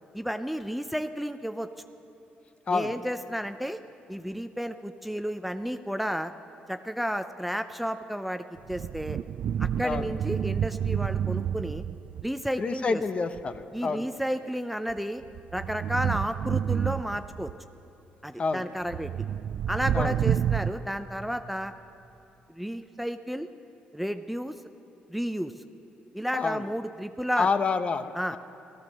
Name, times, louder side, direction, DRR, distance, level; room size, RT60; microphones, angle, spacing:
voice 1, 0.1-1.7 2.7-3.8 4.1-6.3 6.7-9.2 9.6-11.9 12.2-13.0 13.7-15.2 15.5-17.5 18.2-19.1 19.7-21.7 22.5-23.5 23.9-24.5 25.1-25.5 26.1-27.5 28.2-28.4, equal, ahead, 9 dB, 0.5 m, -32 dB
voice 2, 2.7-3.0 9.8-10.1 12.6-14.1 18.4-18.7 19.9-20.2 26.3-26.7 27.4-28.4, left 4 dB, 35° left, 10 dB, 0.8 m, -28 dB
sound 1, 8.6-12.3 13.4-13.6 14.9-17.5 18.9-20.7, right 9 dB, 60° right, 0.3 m, -29 dB
15.5 x 14.0 x 6.5 m, 3.0 s
cardioid pair, 90°, 3 cm